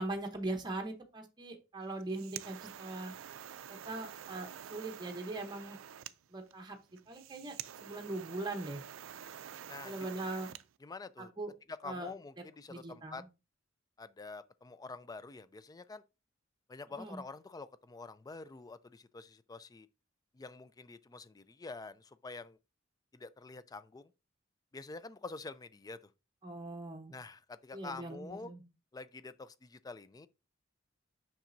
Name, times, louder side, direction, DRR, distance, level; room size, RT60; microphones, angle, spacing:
voice 1, 0.0-3.1 3.7-5.8 6.3-6.8 7.1-7.6 7.8-8.8 9.8-10.5 11.4-11.5 11.8-12.1 12.7-13.2 17.0-17.2 26.4-27.1 27.7-28.6, right 2 dB, 20° right, 0.9 m, -40 dB
sound 1, 1.9-10.7, right 10 dB, 80° right, 0.4 m, -48 dB
voice 2, 9.7-10.1 10.8-11.3 11.7-13.2 14.0-16.0 16.7-19.9 20.3-22.6 23.1-24.1 24.7-26.0 27.1-28.5 28.9-30.3, left 3 dB, 20° left, 0.3 m, -47 dB
7.3 x 5.9 x 2.6 m
head